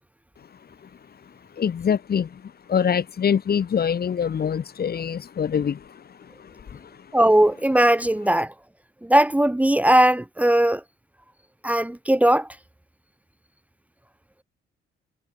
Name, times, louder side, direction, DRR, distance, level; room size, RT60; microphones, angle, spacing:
voice 1, 1.6-2.4 2.7-5.8 6.7-6.8, left 7 dB, 50° left, 5.2 m, -24 dB
voice 2, 7.1-8.5 9.0-10.8 11.6-12.5, right 1 dB, 5° right, 2.0 m, -19 dB
cardioid pair, 90°, 20 cm